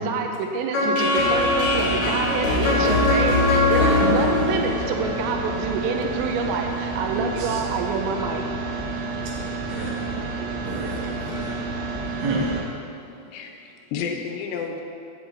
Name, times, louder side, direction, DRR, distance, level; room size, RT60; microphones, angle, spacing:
voice 1, 0.0-8.5, right 5 dB, 90° right, 3 dB, 3.1 m, -27 dB
sound 1, 0.7-5.7, left 2 dB, 45° left, 3.1 m, -21 dB
sound 2, 1.2-12.6, right 3 dB, 70° right, 3.6 m, -30 dB
voice 2, 7.1-7.6 9.7-10.2 10.6-11.6 12.2-12.5, right 2 dB, 55° right, -4 dB, 2.6 m, -30 dB
voice 3, 13.3-14.8, left 6 dB, 85° left, 3 dB, 3.0 m, -31 dB
15.5 x 7.8 x 4.0 m, 2.6 s
omnidirectional pair, 5.0 m